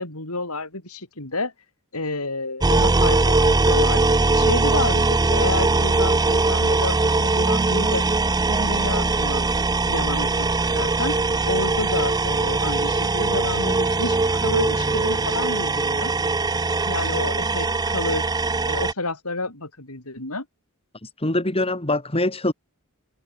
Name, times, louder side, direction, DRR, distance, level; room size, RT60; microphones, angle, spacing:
voice 1, 0.0-1.5 1.9-4.0 4.3-8.1 8.4-9.5 9.9-10.5 10.7-11.2 11.4-16.1 16.8-18.3 18.7-20.5, left 2 dB, 75° left, 7.3 m, -29 dB
sound 1, 2.6-18.9, right 3 dB, 20° right, 0.6 m, -21 dB
voice 2, 21.2-22.5, left 2 dB, 25° left, 3.1 m, -23 dB
head